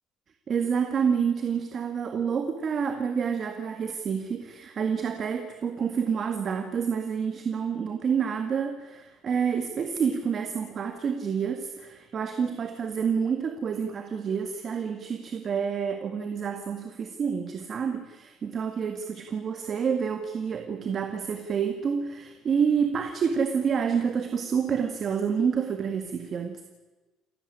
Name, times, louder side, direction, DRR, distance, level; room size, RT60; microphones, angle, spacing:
voice 1, 0.5-26.6, right 6 dB, 35° right, 6 dB, 1.9 m, -28 dB
28.5 x 14.0 x 10.0 m, 1.2 s
cardioid pair, 150°, 0 cm